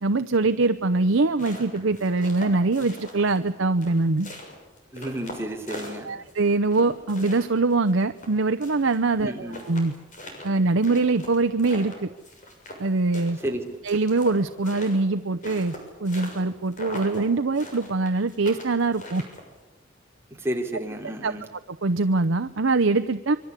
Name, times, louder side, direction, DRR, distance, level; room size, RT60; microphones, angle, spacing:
voice 1, 0.0-4.3 6.0-9.9 10.4-12.1 12.8-13.4 13.8-15.7 16.0-19.2 21.2-21.3 21.8-23.3, right 3 dB, 85° right, 9 dB, 0.8 m, -23 dB
sound 1, 1.1-3.5 3.8-6.3 6.7-9.0 9.2-9.3 9.5-12.9 13.1-16.4 16.7-17.2 17.5-19.6, left 1 dB, 40° left, 6.8 m, -40 dB
voice 2, 4.9-6.1 9.2-9.6 13.4-13.6 20.4-21.4, right 1 dB, 15° right, 2 dB, 3.4 m, -31 dB
26.0 x 24.0 x 8.3 m, 1.0 s
head